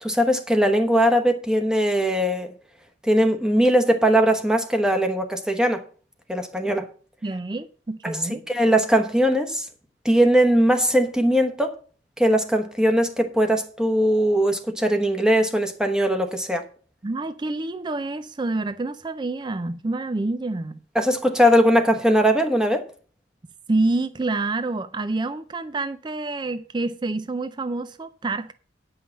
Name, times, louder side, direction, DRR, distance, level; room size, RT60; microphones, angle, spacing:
voice 1, 0.0-2.5 3.0-5.8 6.3-6.9 8.0-9.7 10.0-11.8 12.2-16.6 20.9-22.8, equal, 5° right, 1.0 m, -20 dB
voice 2, 7.2-8.4 17.0-20.8 23.7-28.5, right 2 dB, 25° right, 0.4 m, -27 dB
9.5 x 5.6 x 7.2 m
head